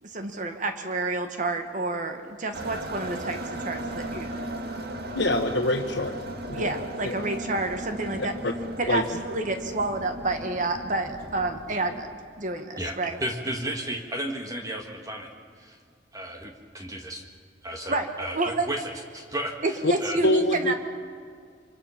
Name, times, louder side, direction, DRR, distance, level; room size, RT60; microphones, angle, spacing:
voice 1, 0.0-4.3 6.5-8.4 8.8-13.2 17.9-18.1 18.3-18.7 19.6-20.7, right 2 dB, 45° right, 6 dB, 1.5 m, -29 dB
sound 1, 2.5-12.0, right 1 dB, 60° right, 1.8 m, -36 dB
voice 2, 5.1-6.2 6.5-6.7 7.0-7.2 8.4-8.5 8.9-9.0 19.8-19.9 20.2-20.7, left 1 dB, 85° left, 2 dB, 1.2 m, -24 dB
voice 3, 12.8-15.3 15.6-15.8 16.1-17.3 17.6-20.2, right 1 dB, 20° right, 3 dB, 1.7 m, -34 dB
26.0 x 25.0 x 5.8 m, 2.1 s
head